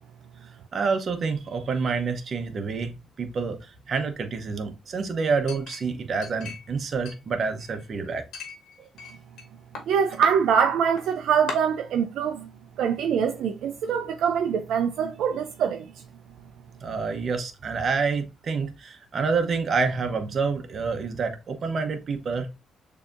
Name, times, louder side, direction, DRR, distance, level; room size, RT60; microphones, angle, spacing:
voice 1, 0.7-8.2 8.8-8.9 16.8-22.5, right 4 dB, 50° right, 0.9 m, -28 dB
Chink clink, 5.5-6.8 7.1-7.8 8.3-9.5 9.8-10.3 11.0-11.1 11.5-11.6, left 4 dB, 85° left, 1.2 m, -38 dB
voice 2, 9.9-12.5 12.8-15.9, right 7 dB, 75° right, 0.4 m, -24 dB
6.7 x 2.8 x 2.5 m
cardioid pair, 90°, 0 cm